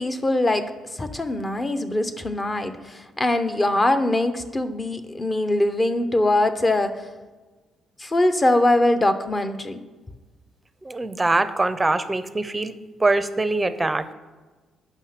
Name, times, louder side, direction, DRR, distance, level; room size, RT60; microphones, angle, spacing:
voice 1, 0.0-7.0 8.0-9.8, left 1 dB, 25° left, 10 dB, 0.8 m, -22 dB
voice 2, 10.8-12.7 13.0-14.1, right 2 dB, 20° right, 12 dB, 0.6 m, -23 dB
8.1 x 5.8 x 5.7 m, 1.3 s
cardioid pair, 90°, 0 cm